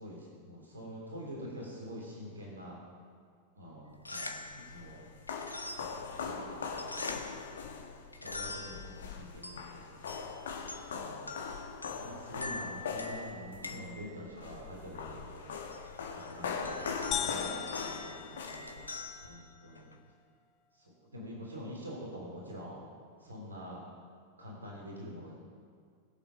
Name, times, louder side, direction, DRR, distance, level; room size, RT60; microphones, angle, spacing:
voice 1, 0.0-2.8 3.5-5.1 5.8-7.5 8.1-10.1 10.9-11.3 12.0-18.8 19.2-19.9 20.7-22.8 23.2-23.8 24.4-25.3, equal, 75° right, -3 dB, 3.4 m, -46 dB
sound 1, 3.9-20.1, left 3 dB, 80° left, 1.0 m, -46 dB
sound 2, 4.2-19.3, left 5 dB, 65° left, 1.3 m, -41 dB
sound 3, 17.1-19.1, left 10 dB, 30° left, 0.5 m, -38 dB
21.0 x 7.7 x 5.0 m, 2.1 s
figure-of-eight pair, 90°, 0 cm